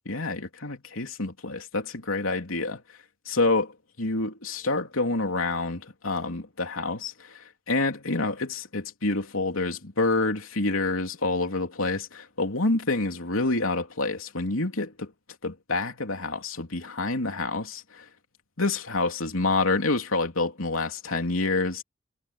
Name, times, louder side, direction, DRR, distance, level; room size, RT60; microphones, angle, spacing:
voice 1, 0.0-2.8 3.3-3.7 4.0-15.1 15.4-18.0 18.6-21.8, left 3 dB, 80° left, 3.1 m, -27 dB
head